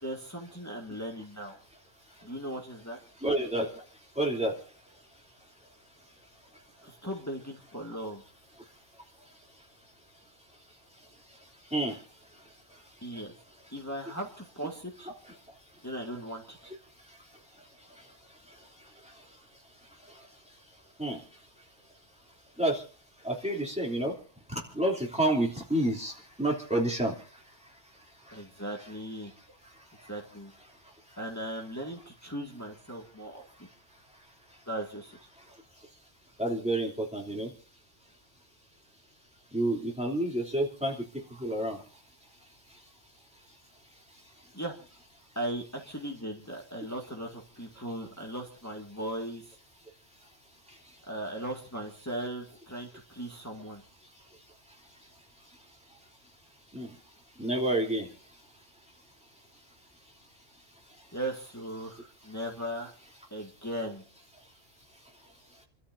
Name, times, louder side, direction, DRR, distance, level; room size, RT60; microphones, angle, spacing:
voice 1, 0.0-1.6 2.2-3.0 6.8-8.2 13.0-13.3 13.7-15.1 15.8-16.7 28.3-29.3 30.1-30.5 31.2-33.7 34.7-35.2 44.5-44.7 45.4-49.6 51.1-53.8 61.1-62.9 63.3-64.0, right 1 dB, 15° left, -1 dB, 2.1 m, -38 dB
voice 2, 3.2-3.8 4.2-4.5 11.7-12.0 21.0-21.2 22.6-22.8 23.2-24.1 24.5-26.1 26.4-27.1 36.4-37.5 39.5-41.8 56.7-56.9 57.4-58.1, right 1 dB, 5° right, -1 dB, 3.2 m, -29 dB
30.0 x 13.0 x 2.7 m, 0.39 s
omnidirectional pair, 1.1 m